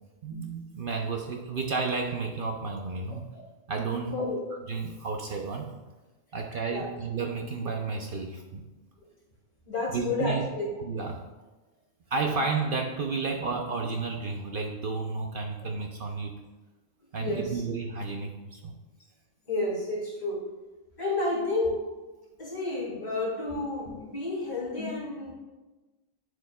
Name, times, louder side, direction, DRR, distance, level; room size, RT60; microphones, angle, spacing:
voice 1, 0.2-3.3 3.7-4.2 4.7-5.7 6.3-8.6 9.9-10.4 10.8-11.2 12.1-16.3 17.1-18.7, right 4 dB, 55° right, 2 dB, 0.6 m, -32 dB
voice 2, 9.7-10.7 17.2-17.6 19.5-20.4 21.0-21.9 22.4-25.3, left 2 dB, 35° left, -5 dB, 2.5 m, -31 dB
10.5 x 4.8 x 2.3 m, 1.1 s
omnidirectional pair, 1.4 m